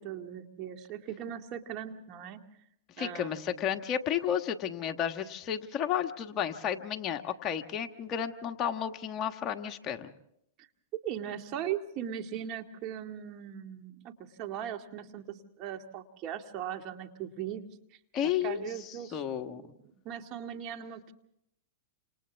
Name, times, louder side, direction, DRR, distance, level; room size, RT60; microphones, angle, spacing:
voice 1, 0.0-2.4 3.0-3.7 10.6-10.7 11.0-17.6 18.2-21.1, right 10 dB, 40° right, 5 dB, 2.1 m, -39 dB
voice 2, 3.0-10.1 18.1-19.6, left 9 dB, 30° left, 6 dB, 1.4 m, -32 dB
29.0 x 27.0 x 3.5 m, 0.75 s
hypercardioid pair, 130°, 0 cm